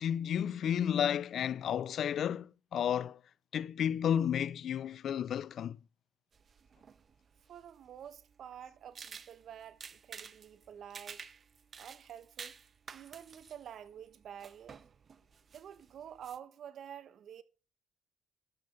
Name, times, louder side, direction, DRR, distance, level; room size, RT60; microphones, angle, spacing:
voice 1, 0.0-3.2 3.5-5.8, left 9 dB, 65° left, 0.4 m, -32 dB
sound 1, 6.3-16.4, right 6 dB, 45° right, 0.8 m, -52 dB
voice 2, 7.5-11.2 11.8-12.5 12.9-14.8 15.5-17.4, right 9 dB, 65° right, 1.1 m, -49 dB
13.0 x 5.7 x 5.2 m
cardioid pair, 90°, 0 cm